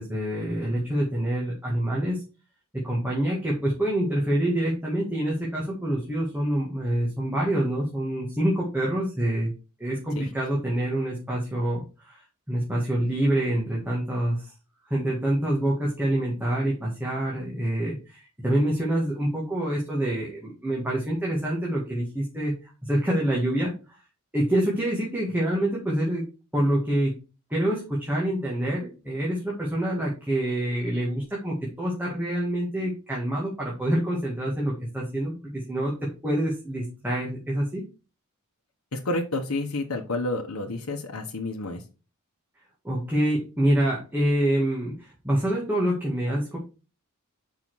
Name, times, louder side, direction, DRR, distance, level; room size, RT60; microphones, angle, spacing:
voice 1, 0.0-2.2 2.8-9.5 9.8-14.5 14.9-23.7 24.3-26.2 26.5-27.1 27.5-35.9 36.2-37.8 42.8-46.6, right 1 dB, 10° right, -4 dB, 1.8 m, -26 dB
voice 2, 38.9-41.8, left 2 dB, 80° left, 2 dB, 1.0 m, -30 dB
5.6 x 4.9 x 4.6 m, 0.32 s
head